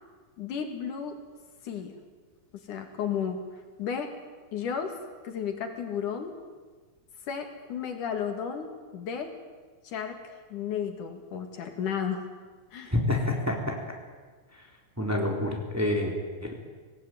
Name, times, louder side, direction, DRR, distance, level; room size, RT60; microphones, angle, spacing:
voice 1, 0.4-1.2 1.6-2.0 2.7-3.4 3.8-4.1 4.5-4.9 5.2-6.3 7.3-9.3 9.8-12.2 12.7-12.9, left 7 dB, 70° left, 5 dB, 3.6 m, -33 dB
voice 2, 12.9-13.8 15.0-16.1 16.4-16.5, left 1 dB, 5° right, 0 dB, 3.6 m, -27 dB
25.0 x 18.0 x 9.3 m, 1.4 s
omnidirectional pair, 3.7 m